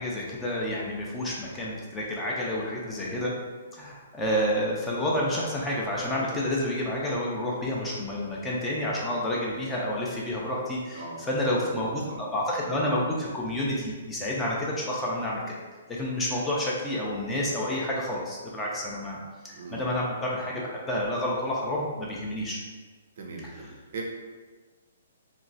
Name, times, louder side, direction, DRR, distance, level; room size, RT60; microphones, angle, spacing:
voice 1, 0.0-3.3 3.7-15.4 15.9-19.2 19.5-20.6 20.9-22.6, left 1 dB, 10° left, -4 dB, 0.5 m, -29 dB
voice 2, 10.9-12.2 19.5-19.9 23.2-24.0, right 3 dB, 50° right, 0 dB, 0.5 m, -40 dB
2.9 x 2.1 x 2.6 m, 1.3 s
figure-of-eight pair, 120°, 0 cm